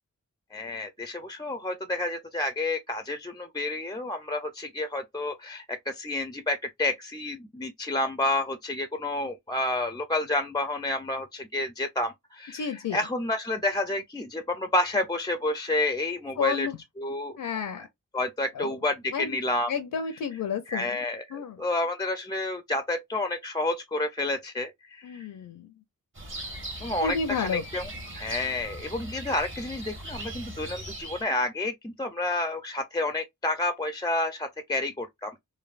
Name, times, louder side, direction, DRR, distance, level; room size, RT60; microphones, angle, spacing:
voice 1, 0.5-16.7 17.0-17.4 18.1-19.7 20.7-25.3 26.8-27.9 28.2-35.4, left 2 dB, 15° left, 0.3 m, -30 dB
voice 2, 12.5-13.0 16.4-16.8 17.4-17.9 18.6-18.7 19.1-19.4 19.7-21.0 21.3-21.6 25.0-25.7 27.0-27.6, left 6 dB, 75° left, 0.5 m, -31 dB
sound 1, 26.2-31.2, right 1 dB, 40° right, 1.1 m, -39 dB
3.2 x 2.1 x 2.4 m
cardioid pair, 55°, 33 cm